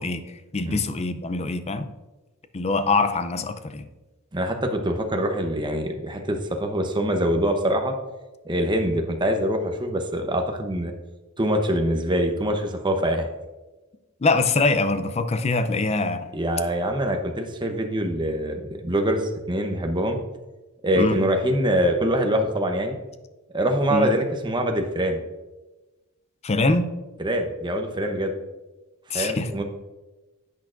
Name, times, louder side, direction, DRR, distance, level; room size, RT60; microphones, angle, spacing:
voice 1, 0.0-1.9 2.5-3.9 14.2-16.3 21.0-21.2 23.9-24.1 26.4-26.9 29.1-29.5, left 3 dB, 30° left, 11 dB, 0.5 m, -24 dB
voice 2, 4.3-7.9 8.4-10.9 11.4-13.3 16.3-20.2 20.8-23.0 23.5-25.2 27.2-28.3 29.1-29.6, equal, 20° right, 4 dB, 0.9 m, -24 dB
10.5 x 8.5 x 2.6 m, 1.1 s
head